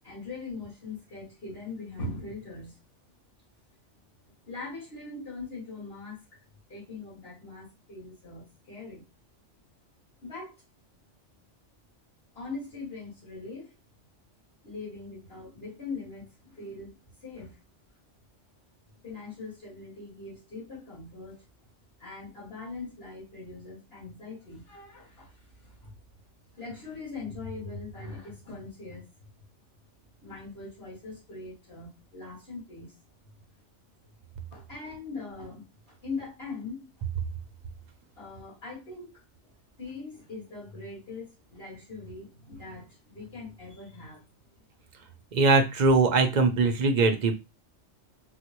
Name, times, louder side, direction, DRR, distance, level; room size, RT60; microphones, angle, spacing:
voice 1, 0.0-2.8 4.5-6.4 6.7-9.0 10.2-10.6 12.3-13.7 14.6-17.6 19.0-21.4 22.0-25.9 26.5-29.0 30.2-32.9 34.5-36.9 38.2-39.2 39.8-44.2, left 3 dB, 55° left, 2.3 m, -41 dB
voice 2, 45.3-47.3, right 3 dB, 55° right, 0.5 m, -21 dB
3.9 x 2.1 x 2.9 m
omnidirectional pair, 1.2 m